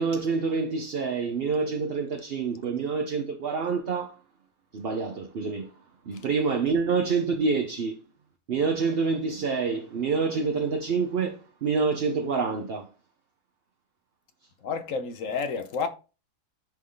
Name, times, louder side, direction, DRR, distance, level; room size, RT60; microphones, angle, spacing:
voice 1, 0.0-4.2 4.7-5.7 6.1-8.0 8.5-12.9, right 4 dB, 50° right, 0.8 m, -27 dB
voice 2, 14.6-15.9, left 5 dB, 60° left, 1.2 m, -30 dB
10.5 x 3.6 x 3.8 m
omnidirectional pair, 1.7 m